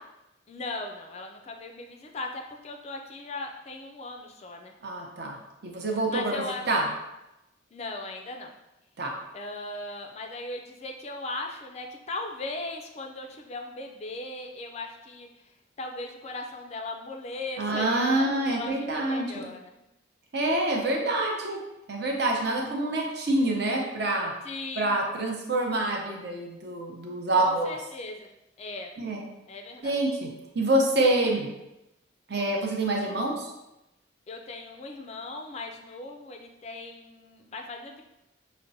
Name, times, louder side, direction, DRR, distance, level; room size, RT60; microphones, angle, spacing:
voice 1, 0.5-4.7 6.1-6.7 7.7-8.5 9.3-15.3 15.8-19.7 22.4-22.7 24.4-24.9 27.3-28.3 28.6-28.9 29.5-30.0 34.3-38.0, left 2 dB, 35° left, 3 dB, 0.3 m, -38 dB
voice 2, 4.8-5.4 5.6-6.9 9.0-9.2 17.6-19.4 20.3-21.6 21.9-24.3 24.8-27.7 29.0-29.2 29.8-30.3 30.5-31.5 32.3-33.5, right 2 dB, 55° right, 0 dB, 0.7 m, -26 dB
5.7 x 2.1 x 2.6 m, 0.92 s
head